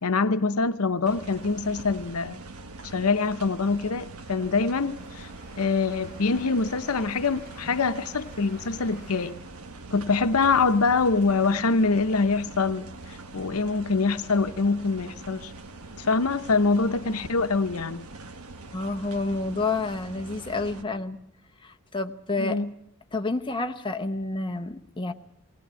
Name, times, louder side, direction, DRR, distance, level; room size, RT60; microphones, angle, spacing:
voice 1, 0.0-2.4 2.9-5.3 5.6-9.4 9.9-15.5 16.0-18.1 22.4-22.7, left 4 dB, 80° left, 11 dB, 0.9 m, -24 dB
sound 1, 1.0-20.8, right 3 dB, 80° right, 1.6 m, -43 dB
sound 2, 3.7-9.3, right 1 dB, 45° right, 7.7 m, -51 dB
voice 2, 18.7-21.2 21.6-22.6 23.1-25.1, left 3 dB, 20° left, 5 dB, 1.0 m, -29 dB
20.0 x 18.5 x 8.3 m, 0.72 s
head